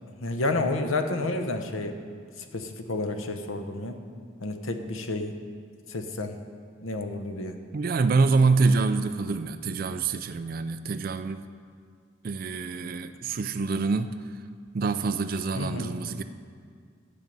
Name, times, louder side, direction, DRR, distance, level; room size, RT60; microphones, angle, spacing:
voice 1, 0.2-2.0 2.5-4.0 4.4-5.4 5.9-6.4 6.8-7.6 15.5-15.9, left 2 dB, 80° left, 6 dB, 0.9 m, -30 dB
voice 2, 7.7-11.4 12.2-14.1 14.7-16.2, right 4 dB, 45° right, 9 dB, 0.3 m, -26 dB
11.5 x 7.3 x 5.3 m, 2.1 s
head